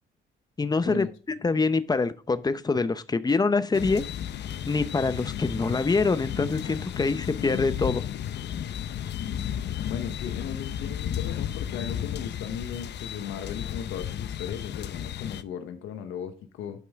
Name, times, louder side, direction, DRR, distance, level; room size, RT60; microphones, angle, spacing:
voice 1, 0.6-1.1 1.4-4.0 4.6-8.0, left 4 dB, 20° left, 0.7 m, -25 dB
sound 1, 3.7-15.4, left 10 dB, 60° left, 0.6 m, -33 dB
voice 2, 9.2-16.8, left 8 dB, 85° left, 1.1 m, -37 dB
11.5 x 5.4 x 3.5 m
cardioid pair, 90°, 20 cm